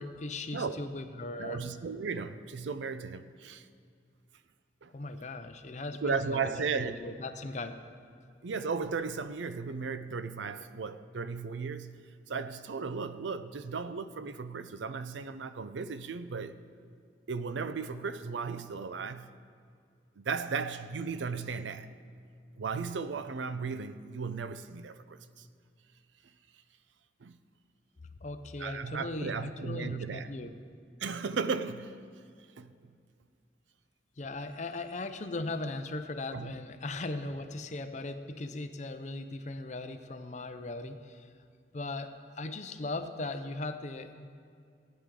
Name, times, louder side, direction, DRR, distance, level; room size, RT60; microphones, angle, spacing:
voice 1, 0.0-1.6 4.9-7.8 28.2-30.6 34.2-41.3 41.7-44.3, left 2 dB, 40° left, 0.6 m, -38 dB
voice 2, 1.4-3.7 4.8-4.9 6.0-7.0 8.4-16.6 17.3-19.3 20.2-21.9 22.6-25.5 27.2-27.4 28.6-30.3 31.0-32.0 32.6-32.7 36.3-36.5, right 5 dB, 80° right, 0.5 m, -35 dB
18.0 x 10.0 x 3.8 m
head